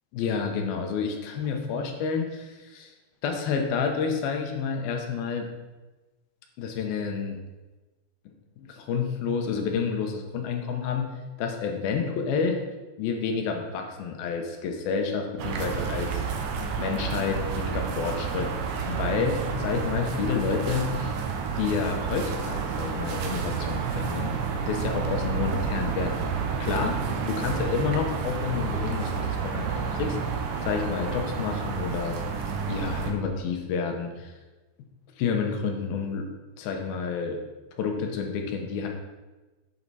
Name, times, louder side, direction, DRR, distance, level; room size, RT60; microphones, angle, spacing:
voice 1, 0.1-2.9 3.2-5.5 6.6-7.4 8.6-11.1 11.4-12.6 13.0-16.3 16.8-18.5 18.9-21.2 21.6-24.3 24.7-27.0 27.3-30.2 30.6-32.2 32.7-34.3 35.2-36.2 36.6-37.4 37.8-38.9, left 5 dB, 70° left, 3 dB, 2.4 m, -29 dB
sound 1, 15.4-33.1, right 5 dB, 75° right, 3.0 m, -30 dB
8.6 x 7.8 x 4.1 m, 1.2 s
omnidirectional pair, 5.2 m